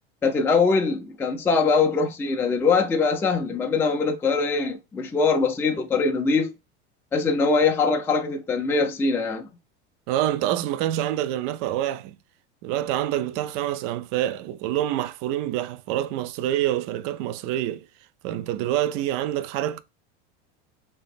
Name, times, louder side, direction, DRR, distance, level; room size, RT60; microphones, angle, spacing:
voice 1, 0.2-6.5 7.1-9.5, left 4 dB, 5° left, 0.4 m, -22 dB
voice 2, 10.1-12.2 12.6-17.9 18.2-19.8, right 12 dB, 55° right, 0.5 m, -26 dB
3.3 x 2.9 x 3.4 m
supercardioid pair, 115°, 34 cm